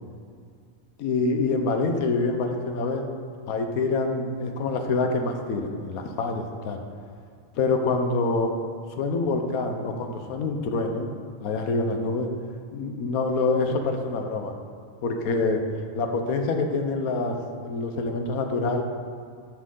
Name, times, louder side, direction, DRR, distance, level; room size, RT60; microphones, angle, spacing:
voice 1, 1.0-3.0 3.5-6.8 7.6-8.5 9.0-11.1 11.4-12.3 12.7-14.5 15.0-15.6 15.9-17.4 17.6-18.8, left 3 dB, 90° left, 5 dB, 1.3 m, -26 dB
10.5 x 6.2 x 3.7 m, 2.1 s
omnidirectional pair, 1.5 m